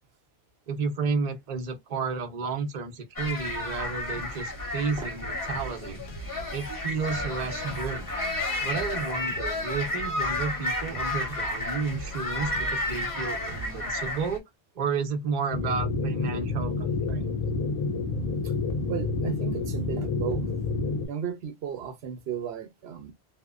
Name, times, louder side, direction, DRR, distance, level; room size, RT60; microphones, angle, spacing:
voice 1, 0.7-6.0 6.5-8.1 8.6-14.4 14.8-17.3, right 5 dB, 45° right, 0.7 m, -32 dB
sound 1, 3.2-14.4, left 2 dB, 20° left, 0.8 m, -32 dB
sound 2, 5.5-13.7, right 2 dB, 90° left, 1.1 m, -44 dB
sound 3, 15.5-21.1, left 3 dB, 65° left, 0.9 m, -29 dB
voice 2, 18.9-20.5 21.1-23.1, right 8 dB, 80° right, 0.8 m, -34 dB
2.8 x 2.0 x 2.3 m
omnidirectional pair, 1.1 m